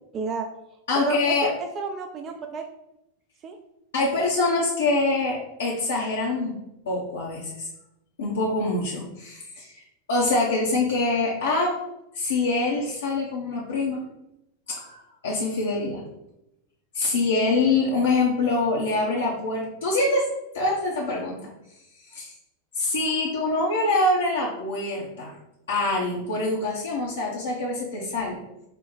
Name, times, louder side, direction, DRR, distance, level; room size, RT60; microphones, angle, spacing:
voice 1, 0.1-0.5 1.0-2.7 3.4-3.6, right 4 dB, 30° right, 5 dB, 0.3 m, -30 dB
voice 2, 0.9-1.5 3.9-6.6 6.9-7.7 8.2-9.8 10.1-11.7 12.1-14.0 14.7-16.0 16.9-20.3 20.5-21.5 22.1-22.3 22.7-25.4 25.7-28.4, left 2 dB, 65° left, -4 dB, 0.7 m, -25 dB
4.3 x 2.1 x 4.0 m, 0.86 s
figure-of-eight pair, 90°, 0 cm